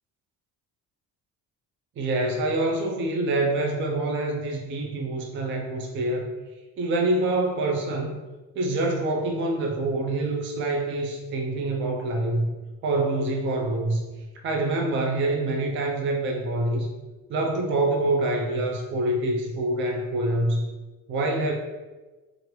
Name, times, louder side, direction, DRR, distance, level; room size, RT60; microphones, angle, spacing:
voice 1, 2.0-6.3 6.8-8.2 8.6-12.5 12.8-14.0 14.4-16.9 17.3-20.6 21.1-21.5, right 2 dB, 35° right, 1 dB, 0.4 m, -26 dB
3.0 x 2.5 x 3.0 m, 1.2 s
cardioid pair, 135°, 37 cm